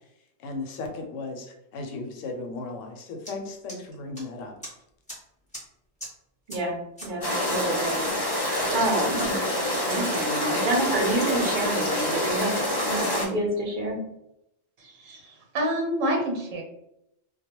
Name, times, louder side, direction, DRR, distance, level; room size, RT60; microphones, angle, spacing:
voice 1, 0.4-4.6, left 3 dB, 80° left, 3 dB, 0.9 m, -36 dB
sound 1, 3.2-3.3 3.7-4.2 4.6-4.7 5.1-5.2 5.5-5.6 6.0-6.1 6.5-6.6 7.0-7.1 7.5-8.1 8.5-8.7 9.0-9.3, equal, 5° left, 0.8 m, -40 dB
voice 2, 6.5-8.1 8.3-9.4 9.9-12.5 12.8-14.0, right 2 dB, 50° right, -1 dB, 0.6 m, -28 dB
sound 2, 7.2-13.3, left 1 dB, 30° left, 0.5 m, -26 dB
voice 3, 14.8-16.6, equal, 85° right, 1 dB, 1.1 m, -28 dB
2.3 x 2.1 x 2.9 m, 0.81 s
omnidirectional pair, 1.3 m